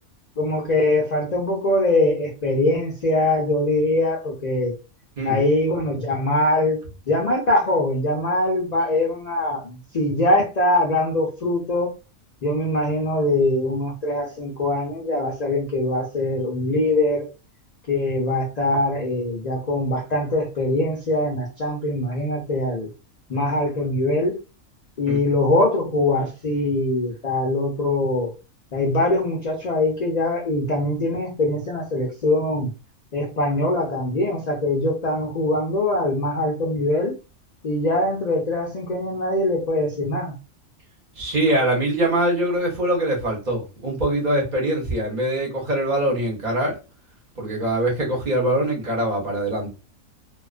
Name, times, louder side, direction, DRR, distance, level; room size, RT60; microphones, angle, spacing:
voice 1, 0.4-4.7 5.2-11.9 12.4-17.3 17.9-22.9 23.3-24.4 25.0-28.3 28.7-32.7 33.1-37.1 37.6-40.4, left 1 dB, 65° left, 0.4 m, -22 dB
voice 2, 41.2-46.8 47.4-49.7, right 1 dB, 40° right, 0.7 m, -23 dB
2.3 x 2.3 x 2.3 m
omnidirectional pair, 1.4 m